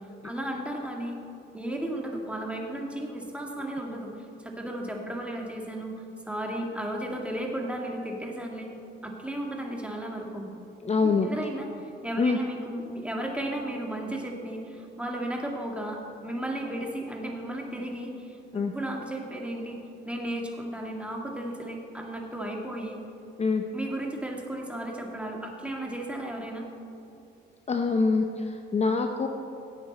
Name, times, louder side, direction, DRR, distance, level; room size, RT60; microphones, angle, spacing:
voice 1, 0.2-1.2 1.5-8.7 9.0-10.5 11.0-11.7 12.0-19.8 20.1-23.0 23.7-26.7, right 1 dB, 5° right, 0 dB, 2.1 m, -34 dB
voice 2, 10.8-11.3 12.2-12.4 18.5-18.7 23.4-23.6 27.7-29.3, left 4 dB, 35° left, 5 dB, 0.8 m, -25 dB
16.5 x 8.6 x 4.2 m, 2.7 s
cardioid pair, 90°, 20 cm